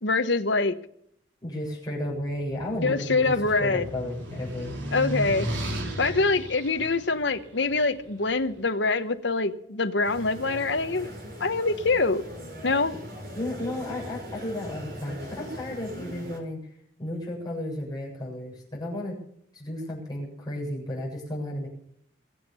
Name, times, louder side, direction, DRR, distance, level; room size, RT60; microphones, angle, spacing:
voice 1, 0.0-0.7 2.8-3.9 4.9-5.5 6.0-11.1 11.4-12.2 12.6-12.9, left 3 dB, 65° left, 9 dB, 1.1 m, -24 dB
voice 2, 1.4-4.8 13.3-16.7 17.0-19.2 19.5-21.7, left 1 dB, 20° left, -4 dB, 7.3 m, -33 dB
sound 1, 2.1-8.4, equal, 75° right, 4.2 m, -35 dB
sound 2, 10.0-16.4, equal, 55° right, 4.8 m, -41 dB
22.5 x 8.2 x 7.0 m, 0.68 s
head